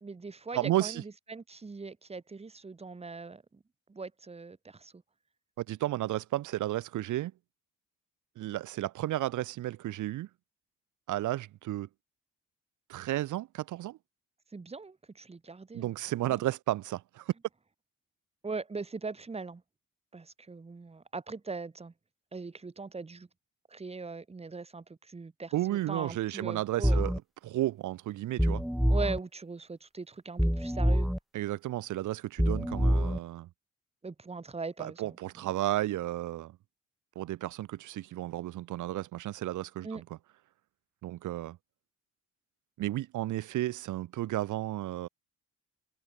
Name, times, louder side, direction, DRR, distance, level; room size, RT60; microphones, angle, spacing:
voice 1, 0.0-3.6 3.9-5.0 14.5-15.9 16.2-16.4 18.4-19.6 20.1-21.9 22.3-23.3 23.7-27.0 28.9-31.1 34.0-35.5 39.8-40.0, right 4 dB, 20° right, 1.5 m, -40 dB
voice 2, 0.5-1.0 5.6-7.3 8.4-10.3 11.1-11.9 12.9-14.0 15.7-17.3 25.5-27.1 27.4-28.6 31.3-33.5 34.8-36.6 37.1-40.0 41.0-41.6 42.8-45.1, right 15 dB, 80° right, 1.2 m, -33 dB
sound 1, 26.8-27.2 28.4-29.2 30.4-31.2 32.4-33.2, equal, ahead, 0.3 m, -26 dB
cardioid pair, 90°, 30 cm